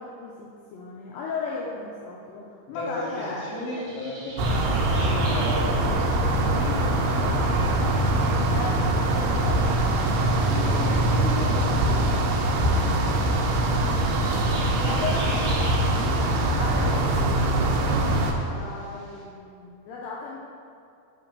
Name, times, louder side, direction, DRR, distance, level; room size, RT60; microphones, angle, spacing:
voice 1, 0.0-3.5 8.4-10.1 11.8-12.0 12.5-12.7 14.5-17.4 18.0-20.4, left 4 dB, 85° left, -4 dB, 2.0 m, -36 dB
voice 2, 2.7-6.1 6.4-8.6 10.5-11.8 13.9-14.1, left 1 dB, 60° left, -6 dB, 1.7 m, -35 dB
sound 1, 2.9-19.2, right 1 dB, 50° right, 1.5 m, -43 dB
sound 2, 4.4-18.3, right 1 dB, 85° right, 2.7 m, -23 dB
7.7 x 3.0 x 5.3 m, 2.5 s
omnidirectional pair, 4.6 m